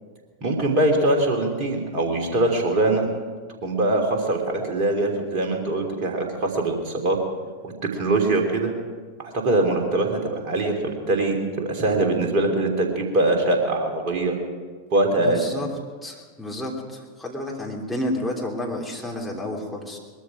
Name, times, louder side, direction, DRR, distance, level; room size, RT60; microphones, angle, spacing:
voice 1, 0.4-3.1 3.6-7.2 7.6-8.7 9.2-14.4 14.9-15.4, right 2 dB, 40° right, 2 dB, 3.2 m, -22 dB
voice 2, 15.2-15.7 16.0-20.0, left 1 dB, ahead, -3 dB, 3.1 m, -30 dB
21.0 x 13.0 x 5.0 m, 1.5 s
figure-of-eight pair, 90°, 0 cm